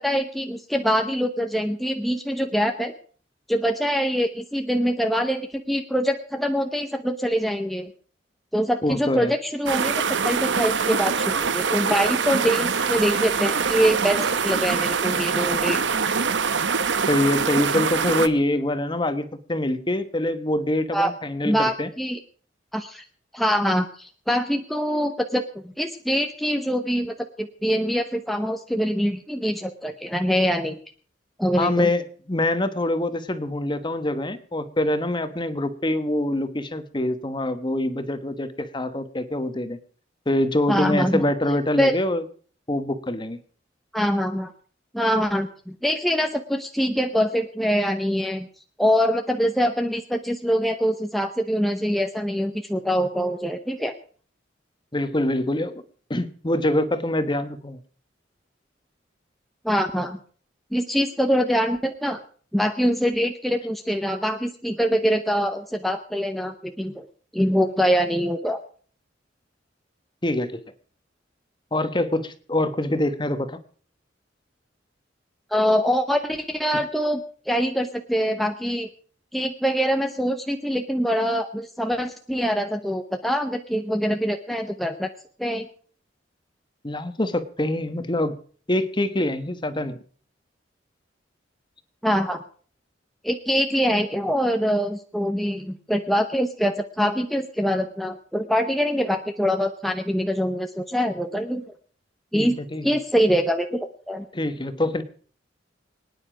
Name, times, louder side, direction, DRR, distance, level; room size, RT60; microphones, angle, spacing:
voice 1, 0.0-2.9 3.5-7.9 8.5-15.8 20.9-21.1 21.4-22.2 22.7-23.0 23.3-30.8 31.4-31.9 40.7-41.2 41.8-41.9 43.9-44.5 44.9-48.5 48.8-53.9 59.6-60.2 60.7-62.2 62.5-67.1 67.3-68.6 75.5-78.9 79.3-85.1 85.4-85.7 92.0-92.4 93.2-101.6 102.3-102.6 102.8-104.2, equal, ahead, 5 dB, 0.8 m, -24 dB
voice 2, 8.8-9.3 17.1-21.9 31.6-39.8 40.3-42.2 42.7-43.4 54.9-55.8 56.1-57.8 70.2-70.6 71.7-73.6 76.7-76.8 86.8-88.4 88.7-90.0 102.3-102.9 104.3-105.0, left 1 dB, 25° left, 11 dB, 1.2 m, -25 dB
sound 1, 9.7-18.3, right 5 dB, 75° right, 0.9 m, -24 dB
24.0 x 9.8 x 5.0 m, 0.44 s
head